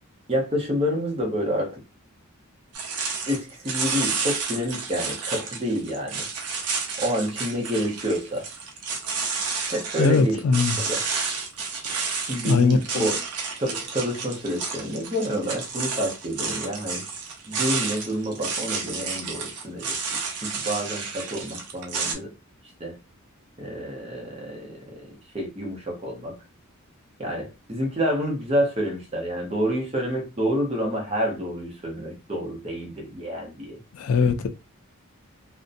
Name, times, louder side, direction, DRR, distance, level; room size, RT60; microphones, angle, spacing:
voice 1, 0.3-1.8 3.3-6.3 7.0-8.5 9.7-10.4 10.8-11.0 12.3-13.2 13.5-17.0 17.5-20.0 20.4-22.3 22.8-22.9 23.6-24.8 25.3-26.3 27.2-33.8, equal, 25° right, 0.7 m, -28 dB
sound 1, 2.7-22.1, right 5 dB, 90° right, 0.6 m, -31 dB
voice 2, 10.0-10.8 12.4-13.1 33.9-34.5, left 4 dB, 70° left, 0.3 m, -21 dB
2.6 x 2.1 x 2.5 m
head